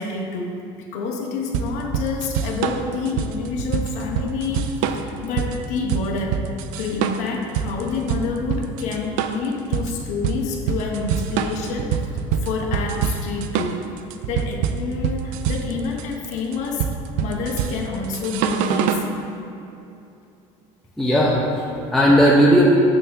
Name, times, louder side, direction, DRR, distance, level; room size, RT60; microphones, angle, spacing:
voice 1, 0.0-6.4 6.8-12.1 12.4-13.8 14.3-16.9 17.2-19.0, left 4 dB, 65° left, 0 dB, 1.0 m, -28 dB
sound 1, 1.5-19.1, right 7 dB, 75° right, 0.4 m, -25 dB
voice 2, 21.0-22.6, equal, ahead, -5 dB, 0.6 m, -16 dB
6.8 x 3.6 x 6.2 m, 2.7 s
cardioid pair, 140°, 13 cm